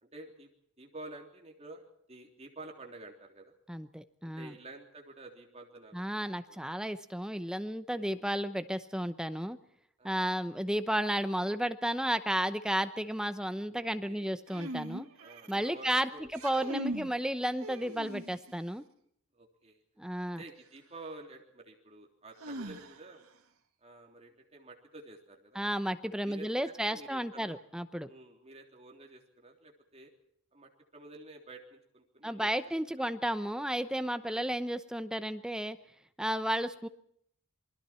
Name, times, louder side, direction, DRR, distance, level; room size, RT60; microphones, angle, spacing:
voice 1, 0.0-0.5 0.8-3.5 4.2-6.6 7.9-8.3 10.0-10.3 13.8-14.4 15.2-16.3 17.0-17.1 19.3-19.8 20.2-23.2 23.8-25.6 26.2-27.6 28.1-30.1 30.5-32.5 34.3-34.5, right 2 dB, 30° right, 2 dB, 3.3 m, -50 dB
voice 2, 3.7-4.5 5.9-9.6 10.0-15.1 15.5-18.8 20.0-20.4 25.5-28.1 32.2-35.8 36.2-36.9, equal, 5° right, 11 dB, 0.8 m, -33 dB
sound 1, 14.5-15.7 16.2-17.1 17.6-18.5 20.5-20.6 22.4-23.2, right 1 dB, 75° right, 2.3 m, -40 dB
27.5 x 21.0 x 4.4 m, 0.69 s
head